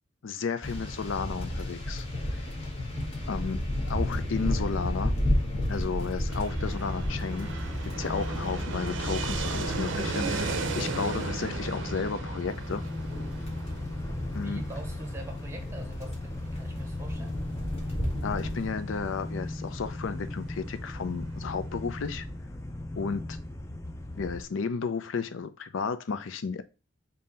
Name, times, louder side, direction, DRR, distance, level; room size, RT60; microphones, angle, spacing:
voice 1, 0.2-2.1 3.3-3.6 3.9-5.1 5.7-7.5 7.9-12.8 14.3-14.6 18.2-22.2 23.0-23.4 24.2-26.6, left 5 dB, 75° left, 0.5 m, -33 dB
sound 1, 0.6-10.8 12.5-18.7, left 1 dB, 30° left, 1.2 m, -33 dB
Fixed-wing aircraft airplane, 6.3-22.0, right 4 dB, 70° right, 0.6 m, -37 dB
sound 2, 6.6-24.4, left 1 dB, 15° left, 0.5 m, -36 dB
voice 2, 14.0-17.4, right 1 dB, 15° right, 0.8 m, -42 dB
3.7 x 2.7 x 3.9 m
head